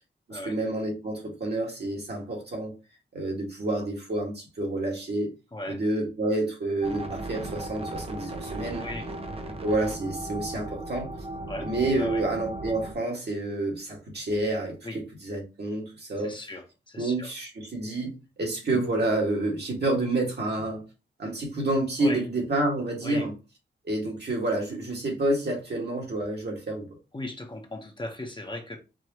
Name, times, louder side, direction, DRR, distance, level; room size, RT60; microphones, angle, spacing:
voice 1, 0.3-2.7 3.1-5.3 5.7-8.8 9.6-11.1 11.6-14.8 15.2-16.3 17.0-20.8 21.2-23.3 23.8-26.9, right 2 dB, 60° right, 1.9 m, -29 dB
sound 1, 6.8-12.9, right 1 dB, 30° right, 0.7 m, -36 dB
voice 2, 8.8-9.1 11.5-11.7 11.9-12.2 14.8-15.0 16.2-17.3 22.0-22.2 23.0-23.3 27.1-28.8, left 1 dB, 25° left, 0.9 m, -37 dB
4.7 x 2.9 x 2.9 m
wide cardioid pair, 95°, 19 cm